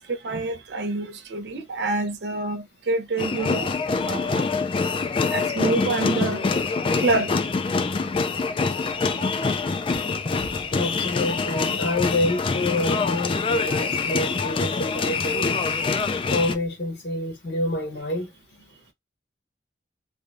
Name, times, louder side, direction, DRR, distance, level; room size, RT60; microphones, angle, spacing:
voice 1, 0.1-3.7 4.0-4.4 5.3-6.4 7.0-7.4 11.6-11.7, right 3 dB, 75° right, 0.6 m, -27 dB
sound 1, 3.2-16.6, left 4 dB, 30° left, 0.3 m, -25 dB
voice 2, 10.7-15.5 16.3-18.3, left 1 dB, 75° left, 1.5 m, -27 dB
3.3 x 2.2 x 2.5 m
head